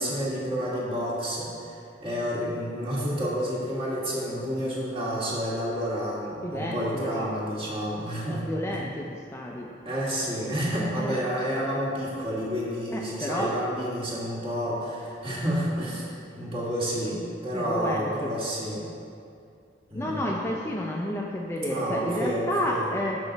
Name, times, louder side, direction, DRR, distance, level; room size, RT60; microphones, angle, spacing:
voice 1, 0.0-8.4 8.7-8.8 9.8-16.1 16.4-18.9 19.9-20.3 21.6-22.8, equal, 30° right, -7 dB, 1.6 m, -30 dB
voice 2, 6.4-7.3 8.3-9.7 10.9-11.1 12.9-13.5 17.5-18.3 19.9-23.2, left 1 dB, 15° left, -2 dB, 0.4 m, -31 dB
6.3 x 5.8 x 3.9 m, 2.4 s
head